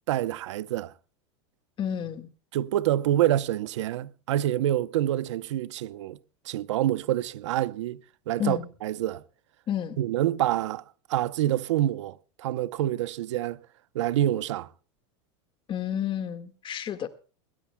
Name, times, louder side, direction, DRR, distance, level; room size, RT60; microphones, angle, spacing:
voice 1, 0.1-0.9 2.5-6.2 6.4-8.0 8.3-9.2 10.0-10.8 11.1-13.6 13.9-14.7, right 13 dB, 80° right, 0.8 m, -27 dB
voice 2, 1.8-2.3 8.4-8.7 9.7-10.0 15.7-17.1, left 9 dB, 35° left, 1.8 m, -30 dB
21.5 x 16.5 x 2.3 m
supercardioid pair, 120°, 15 cm